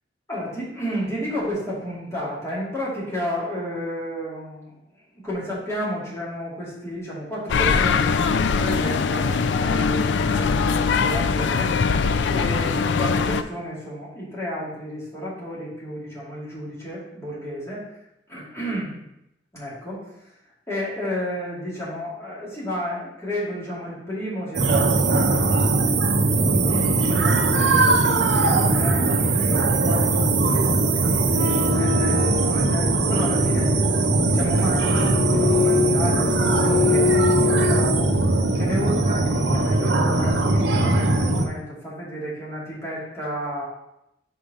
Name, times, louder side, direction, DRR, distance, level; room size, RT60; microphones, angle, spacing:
voice 1, 0.3-4.7 5.1-11.7 12.2-17.9 18.3-19.0 19.5-20.1 20.7-25.7 26.3-30.6 30.9-33.7 34.3-38.1 38.5-43.6, equal, 15° left, -7 dB, 2.3 m, -32 dB
sound 1, 7.5-13.4, left 5 dB, 80° left, 0.4 m, -21 dB
sound 2, 24.5-41.5, right 2 dB, 75° right, 0.7 m, -20 dB
sound 3, 31.2-38.2, left 5 dB, 50° right, 0.9 m, -26 dB
5.0 x 4.4 x 5.2 m, 0.84 s
head